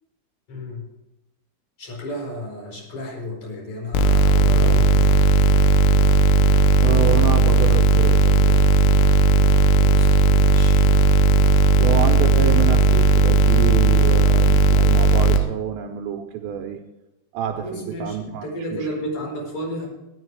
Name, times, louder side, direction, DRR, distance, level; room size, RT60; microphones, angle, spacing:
voice 1, 0.5-0.8 1.8-5.2 9.7-10.8 17.6-19.9, left 1 dB, 40° left, -1 dB, 5.8 m, -32 dB
sound 1, 3.9-15.4, right 2 dB, 75° left, 2.8 m, -15 dB
voice 2, 6.8-8.7 11.8-16.8 17.3-19.1, right 9 dB, 80° right, 3 dB, 2.7 m, -28 dB
13.5 x 11.0 x 4.8 m, 0.97 s
omnidirectional pair, 5.5 m